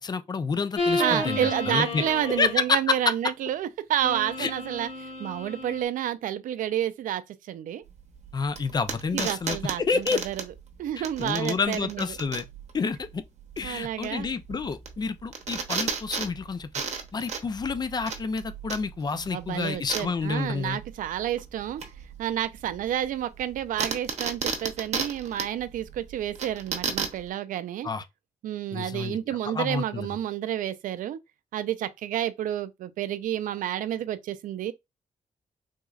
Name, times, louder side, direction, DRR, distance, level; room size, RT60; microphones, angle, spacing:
voice 1, 0.0-2.0 2.4-3.1 4.4-4.5 8.3-10.3 11.0-12.4 12.7-13.2 13.6-16.7 17.1-20.8 27.8-28.0 28.7-29.2 29.5-30.1, left 4 dB, 30° left, 0.4 m, -29 dB
sound 1, 0.7-2.7 4.0-5.8, left 2 dB, 50° left, 1.4 m, -31 dB
voice 2, 1.0-7.8 9.1-10.4 10.8-12.1 13.6-14.3 19.1-21.8 22.2-27.9 28.4-31.2 31.5-34.7, right 11 dB, 85° right, 0.4 m, -30 dB
sound 2, 7.9-27.3, right 5 dB, 55° right, 0.9 m, -35 dB
3.5 x 3.1 x 2.3 m
cardioid pair, 130°, 13 cm